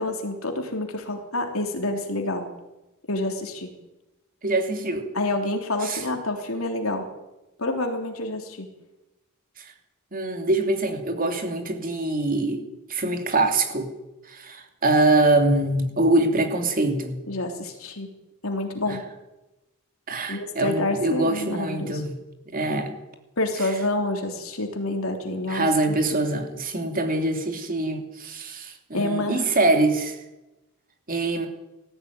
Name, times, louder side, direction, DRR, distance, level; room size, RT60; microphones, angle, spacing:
voice 1, 0.0-2.5 3.1-3.7 5.1-7.1 7.6-8.7 17.3-18.1 18.4-19.0 20.3-22.0 23.4-26.0 28.9-29.4, left 2 dB, 65° left, 4 dB, 3.5 m, -28 dB
voice 2, 4.4-5.1 5.8-6.0 9.6-9.7 10.1-12.6 12.9-13.9 14.3-17.2 18.9-19.0 20.1-22.2 22.5-22.9 23.6-23.7 25.5-30.2 31.1-31.5, right 2 dB, 40° right, 5 dB, 3.0 m, -24 dB
19.0 x 15.0 x 9.7 m, 1.0 s
head